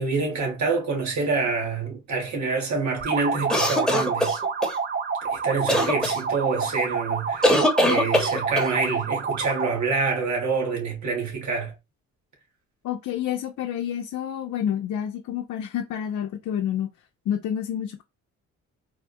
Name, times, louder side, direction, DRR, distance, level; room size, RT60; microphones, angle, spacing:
voice 1, 0.0-4.4 5.2-11.7, right 4 dB, 70° right, 1.6 m, -27 dB
sound 1, 3.0-9.8, right 5 dB, 35° right, 0.6 m, -28 dB
sound 2, 3.5-4.7 5.7-6.2 7.4-8.7, left 1 dB, ahead, 1.0 m, -21 dB
voice 2, 12.8-16.9 17.3-18.0, left 9 dB, 70° left, 0.6 m, -29 dB
3.5 x 2.3 x 2.5 m
cardioid pair, 90°, 30 cm